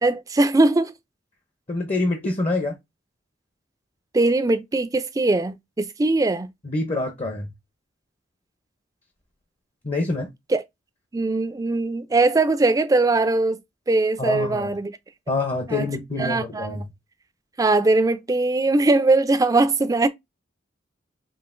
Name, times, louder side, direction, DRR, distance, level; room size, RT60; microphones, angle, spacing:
voice 1, 0.0-0.9 4.1-6.5 10.5-10.6 11.1-13.6 13.9-14.9 15.7-15.9 16.2-16.8 17.6-20.1, right 2 dB, 20° right, 0.4 m, -20 dB
voice 2, 1.7-2.8 6.6-7.5 9.8-10.3 14.2-14.7 15.3-16.9, left 2 dB, 35° left, 0.7 m, -26 dB
5.5 x 2.5 x 2.5 m
head